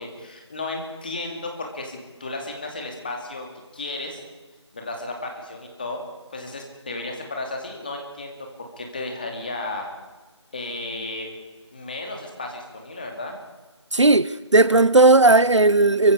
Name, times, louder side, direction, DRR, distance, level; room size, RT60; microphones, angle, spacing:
voice 1, 0.0-3.5 3.7-4.2 4.7-6.0 6.3-9.9 10.5-11.3 11.7-13.4, left 2 dB, 20° left, 2.4 m, -33 dB
voice 2, 13.9-16.1, right 2 dB, 75° right, 0.8 m, -16 dB
29.0 x 24.0 x 5.0 m
figure-of-eight pair, 170°, 15 cm